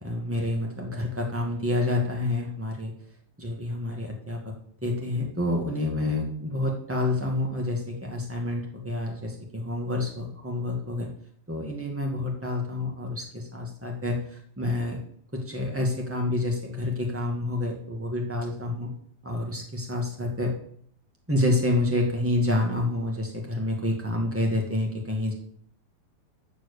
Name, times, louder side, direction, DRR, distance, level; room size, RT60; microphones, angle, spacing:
voice 1, 0.0-2.9 3.4-4.5 4.8-11.1 11.5-15.0 15.3-18.9 19.2-20.5 21.3-25.3, left 1 dB, 15° right, 0 dB, 0.4 m, -28 dB
9.3 x 6.9 x 6.9 m, 0.62 s
omnidirectional pair, 4.0 m